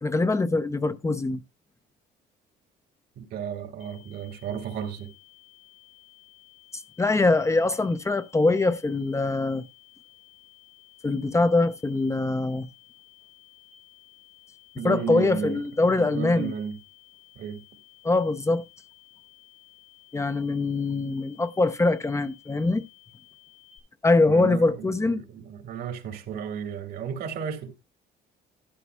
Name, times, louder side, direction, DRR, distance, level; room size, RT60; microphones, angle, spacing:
voice 1, 0.0-1.4 7.0-9.6 11.0-12.7 14.8-16.5 18.0-18.6 20.1-22.8 24.0-25.2, left 3 dB, 15° left, 0.6 m, -23 dB
voice 2, 3.2-5.1 14.8-16.8 17.4-17.6 24.3-27.8, right 8 dB, 75° right, 2.0 m, -34 dB
sound 1, 3.8-23.8, left 19 dB, 60° left, 3.1 m, -55 dB
12.5 x 11.5 x 2.3 m
cardioid pair, 110°, 17 cm